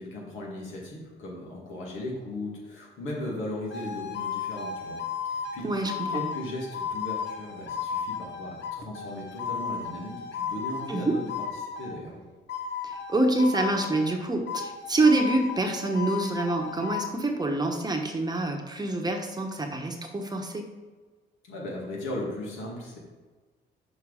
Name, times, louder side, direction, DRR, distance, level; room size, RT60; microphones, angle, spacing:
voice 1, 0.0-5.0 5.3-5.7 6.1-12.2 21.5-23.0, left 1 dB, 85° left, -2 dB, 2.1 m, -37 dB
sound 1, 3.7-12.0 12.5-14.2 14.5-17.1, left 6 dB, 65° left, 0.8 m, -34 dB
voice 2, 5.6-6.2 10.9-11.2 12.8-20.6, right 2 dB, 20° right, 3 dB, 1.0 m, -26 dB
6.2 x 4.8 x 4.9 m, 1.3 s
cardioid pair, 90°, 20 cm